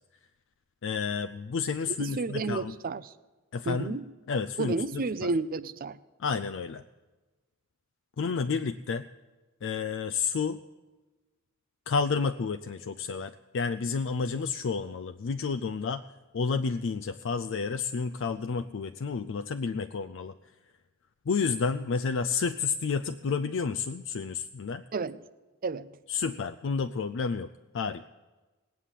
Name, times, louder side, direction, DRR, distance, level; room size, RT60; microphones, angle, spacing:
voice 1, 0.8-2.7 3.5-4.0 4.3-5.3 6.2-6.8 8.2-9.0 9.6-10.6 11.9-16.0 16.3-20.3 21.3-24.8 26.1-27.5 27.7-28.1, left 5 dB, 60° left, 10 dB, 0.4 m, -30 dB
voice 2, 1.9-3.1 3.7-4.0 4.6-6.0 24.9-25.2 25.6-25.8, right 3 dB, 40° right, 16 dB, 0.5 m, -31 dB
18.5 x 8.4 x 7.4 m, 1.2 s
head